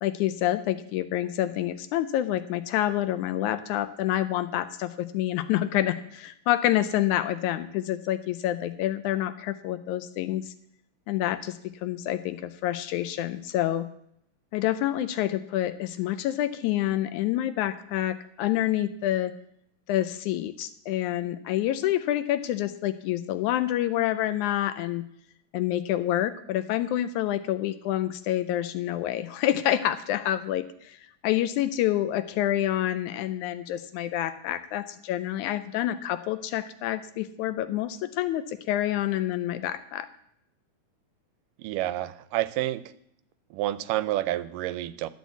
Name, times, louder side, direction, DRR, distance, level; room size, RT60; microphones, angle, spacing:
voice 1, 0.0-10.5 11.1-13.9 14.5-19.3 19.9-25.0 25.5-40.1, left 13 dB, 80° left, 12 dB, 1.8 m, -27 dB
voice 2, 41.6-42.9 43.5-45.1, right 15 dB, 90° right, 16 dB, 2.2 m, -29 dB
12.0 x 6.3 x 8.0 m, 0.73 s
omnidirectional pair, 3.7 m